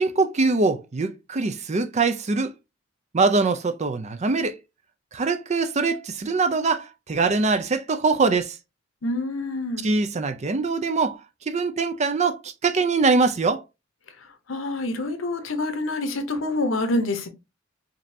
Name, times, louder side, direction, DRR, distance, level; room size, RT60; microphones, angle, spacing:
voice 1, 0.0-2.5 3.1-4.6 5.1-8.6 9.8-11.2 11.5-13.6, right 4 dB, 35° right, 0.5 m, -23 dB
voice 2, 9.0-9.9 14.5-17.3, left 2 dB, 85° left, 0.9 m, -26 dB
5.1 x 2.8 x 2.7 m
head